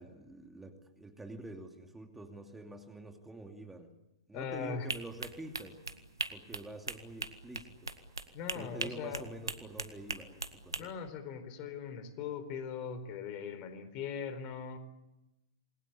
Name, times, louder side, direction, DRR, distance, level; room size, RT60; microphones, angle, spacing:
voice 1, 0.0-3.9 4.3-5.8 6.3-7.9 8.5-11.0, right 2 dB, 10° right, 4 dB, 2.6 m, -47 dB
voice 2, 4.3-4.9 8.3-9.2 10.8-14.8, left 7 dB, 40° left, 12 dB, 4.3 m, -40 dB
sound 1, 4.9-10.8, right 3 dB, 90° right, 2.0 m, -40 dB
28.0 x 21.5 x 8.5 m, 0.95 s
figure-of-eight pair, 105°, 2 cm